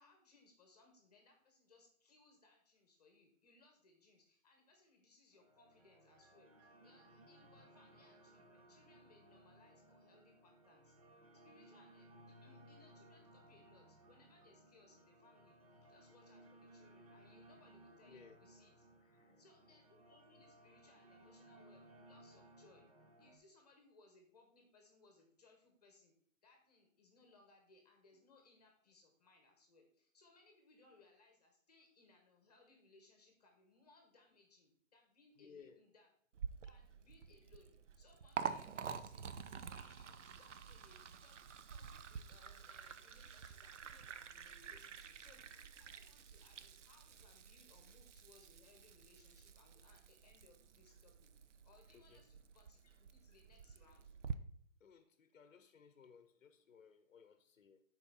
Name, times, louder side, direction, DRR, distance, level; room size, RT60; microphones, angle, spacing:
voice 1, 0.0-11.0 11.4-15.6 15.8-18.8 19.4-22.9 23.2-26.1 26.4-36.1 36.6-41.4 41.7-54.1, left 3 dB, 30° left, 3 dB, 1.1 m, -68 dB
sound 1, 5.3-23.4, right 1 dB, 30° right, 0.8 m, -63 dB
voice 2, 18.0-18.4 19.0-19.4 35.4-35.8 38.4-39.2 51.9-52.2 54.8-57.8, left 6 dB, 65° left, 9 dB, 0.8 m, -62 dB
Liquid, 36.3-54.3, right 6 dB, 65° right, 0.6 m, -49 dB
10.5 x 4.4 x 4.0 m, 0.63 s
hypercardioid pair, 170°, 40 cm